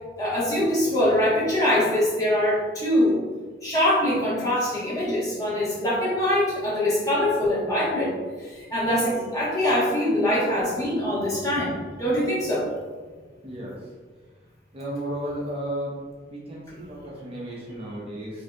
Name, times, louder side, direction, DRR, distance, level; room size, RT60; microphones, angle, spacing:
voice 1, 0.2-3.2 3.6-8.1 8.4-12.7, left 1 dB, 20° left, -8 dB, 1.1 m, -23 dB
voice 2, 13.4-13.8 14.7-16.0 16.3-18.4, right 1 dB, 30° right, -5 dB, 0.7 m, -33 dB
5.3 x 2.7 x 2.3 m, 1.5 s
head